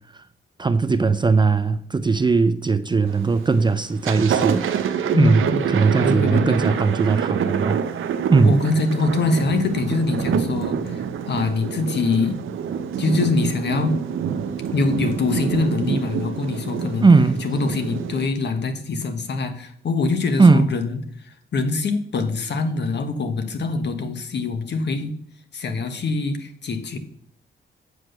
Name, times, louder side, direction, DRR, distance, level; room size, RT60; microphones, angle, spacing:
voice 1, 0.6-4.7 5.2-7.8 8.3-8.6 17.0-17.5 20.4-20.7, right 4 dB, 25° right, 0.5 m, -18 dB
Thunder, 3.1-3.5 3.9-18.3, right 7 dB, 85° right, 0.8 m, -26 dB
voice 2, 5.1-5.7 6.0-6.6 8.3-12.4 13.0-14.0 14.7-17.1 17.4-25.2 25.5-27.0, left 3 dB, 60° left, 1.4 m, -24 dB
8.1 x 7.4 x 6.7 m
wide cardioid pair, 130°, 20 cm